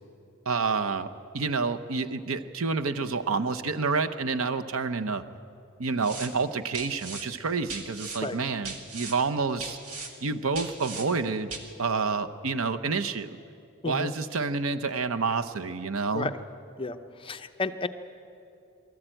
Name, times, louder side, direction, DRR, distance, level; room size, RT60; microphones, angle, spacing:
voice 1, 0.5-5.2 5.8-9.8 10.2-11.5 11.8-13.4 13.8-16.3, right 4 dB, 70° right, 10 dB, 0.8 m, -29 dB
sound 1, 6.0-6.3 6.7-7.2 7.7-8.2 8.6-9.1 9.6-10.1 10.5-11.0 11.5-11.6, right 4 dB, 90° right, 1.9 m, -38 dB
voice 2, 17.2-17.9, left 3 dB, 25° left, 8 dB, 0.7 m, -31 dB
23.0 x 14.0 x 9.0 m, 2.6 s
head